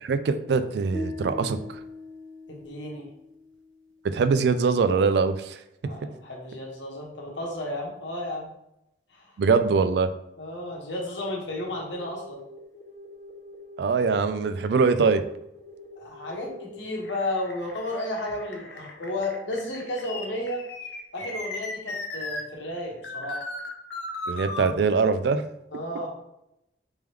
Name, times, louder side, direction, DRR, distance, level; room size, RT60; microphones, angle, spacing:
voice 1, 0.0-1.8 4.0-5.6 9.4-10.1 13.8-15.2 24.3-25.4, right 5 dB, 65° right, 11 dB, 0.3 m, -23 dB
sound 1, 0.9-4.1, left 2 dB, 5° left, 0.9 m, -40 dB
voice 2, 2.5-3.1 5.8-8.5 9.1-9.3 10.4-12.4 16.0-20.6 21.1-23.4 25.7-26.1, left 1 dB, 80° left, -1 dB, 1.1 m, -33 dB
sound 2, 11.7-22.4 23.0-24.7, left 2 dB, 65° left, 0.6 m, -38 dB
3.5 x 3.1 x 3.3 m, 0.84 s
head